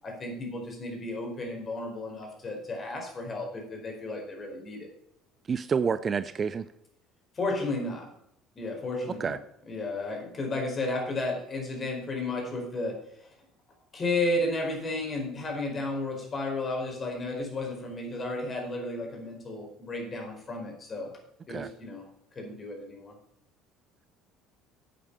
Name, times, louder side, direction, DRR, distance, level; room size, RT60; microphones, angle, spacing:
voice 1, 0.0-4.9 7.3-8.1 8.5-9.4 9.7-13.3 13.9-21.1 21.5-22.0 22.3-23.1, left 2 dB, 35° left, 2 dB, 4.5 m, -33 dB
voice 2, 5.5-6.7 9.2-9.4 21.5-21.7, right 6 dB, 35° right, 14 dB, 0.5 m, -28 dB
9.8 x 8.8 x 5.5 m, 0.75 s
figure-of-eight pair, 60°, 0 cm